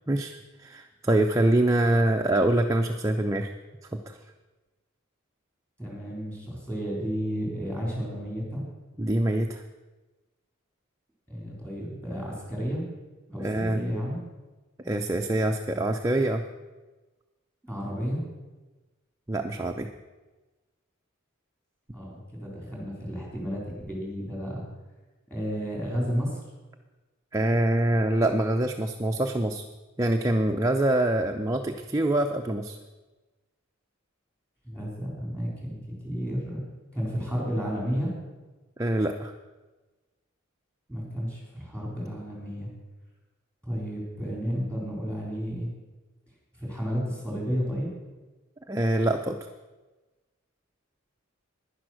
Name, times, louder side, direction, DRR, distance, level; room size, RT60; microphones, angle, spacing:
voice 1, 0.1-3.5 4.1-4.2 9.0-9.6 13.4-13.9 14.8-16.4 19.3-19.9 27.3-29.6 30.0-32.8 38.8-39.3 48.7-49.5, right 1 dB, 15° right, 3 dB, 0.5 m, -25 dB
voice 2, 5.8-8.6 11.3-12.8 13.3-14.2 17.6-18.2 21.9-24.6 25.3-26.4 34.6-35.8 36.0-36.6 36.9-38.1 40.9-42.7 43.6-45.7 46.6-47.9, equal, 5° left, -3 dB, 3.8 m, -32 dB
10.5 x 10.5 x 6.3 m, 1.2 s
head